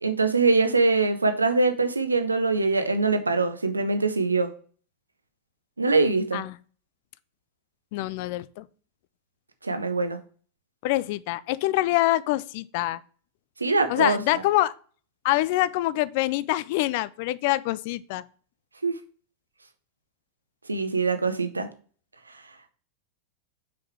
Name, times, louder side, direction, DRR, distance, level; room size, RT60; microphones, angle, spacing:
voice 1, 0.0-4.5 5.8-6.4 9.6-10.2 13.6-14.4 18.8-19.0 20.7-21.7, right 3 dB, 80° right, 0.7 m, -23 dB
voice 2, 7.9-8.6 10.8-13.0 13.9-14.7 15.2-18.2, left 16 dB, 50° left, 0.3 m, -25 dB
5.9 x 4.8 x 3.5 m
figure-of-eight pair, 90°, 0 cm